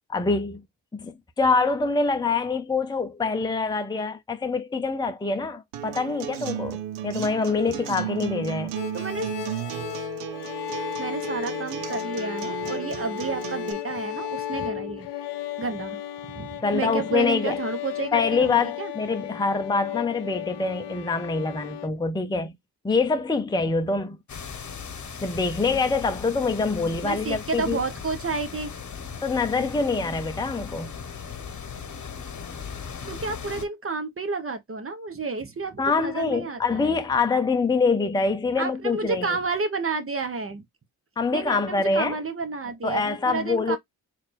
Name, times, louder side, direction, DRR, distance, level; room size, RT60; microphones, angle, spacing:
voice 1, 0.1-0.6 0.9-8.7 16.6-17.6 18.1-22.5 22.8-24.2 25.2-27.8 29.2-30.9 35.8-39.3 41.2-42.2 42.8-43.8, left 4 dB, 10° left, 0.7 m, -25 dB
Acoustic guitar, 5.7-13.7, right 11 dB, 80° right, 0.7 m, -34 dB
sound 1, 8.7-21.9, left 12 dB, 75° left, 0.7 m, -34 dB
voice 2, 8.9-9.3 11.0-15.1 15.6-16.0 16.3-18.9 27.0-28.7 33.1-36.9 38.6-40.6 41.3-43.8, right 4 dB, 30° right, 1.2 m, -31 dB
sound 2, 24.3-33.6, left 6 dB, 45° left, 1.1 m, -38 dB
4.1 x 2.6 x 3.4 m
supercardioid pair, 45°, 42 cm